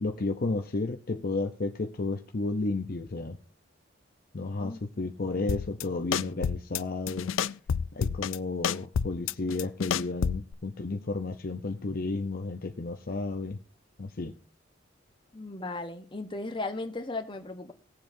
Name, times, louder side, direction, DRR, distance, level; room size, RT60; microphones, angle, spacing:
voice 1, 0.0-3.4 4.3-7.3 7.9-13.6 14.0-14.3, left 3 dB, 50° left, 6 dB, 0.7 m, -32 dB
sound 1, 5.5-5.8 6.1-6.8 7.1-8.4 8.6-10.5, left 7 dB, 85° left, 0.4 m, -29 dB
voice 2, 15.3-17.7, left 2 dB, 25° left, 6 dB, 1.1 m, -36 dB
19.0 x 7.5 x 2.7 m, 0.39 s
head